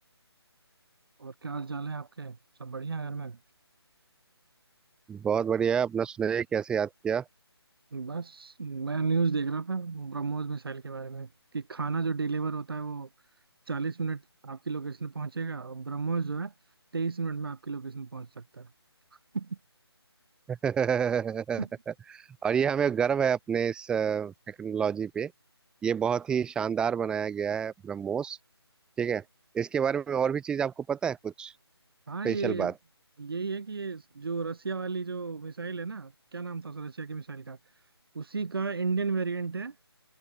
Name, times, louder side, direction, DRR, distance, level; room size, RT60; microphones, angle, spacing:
voice 1, 1.2-3.4 7.9-13.1 13.7-16.5 16.9-18.7 19.1-19.6 21.6-21.7 32.1-32.7 33.2-37.9 38.1-39.8, right 4 dB, 60° right, 7.1 m, -33 dB
voice 2, 5.1-7.2 20.5-21.6 22.1-25.3 25.8-28.4 29.0-29.2 29.5-31.5 32.2-32.7, right 7 dB, 5° right, 1.9 m, -28 dB
figure-of-eight pair, 155°, 14 cm